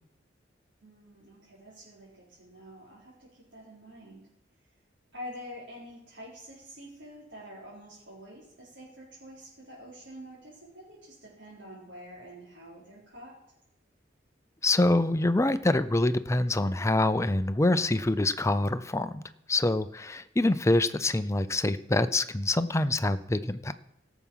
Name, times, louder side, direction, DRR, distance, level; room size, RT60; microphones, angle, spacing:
voice 1, 0.8-4.2 5.1-13.4, equal, 75° right, -9 dB, 4.4 m, -47 dB
voice 2, 14.6-19.2 19.5-23.7, left 2 dB, 15° left, 12 dB, 0.5 m, -25 dB
17.0 x 7.1 x 5.6 m, 0.79 s
head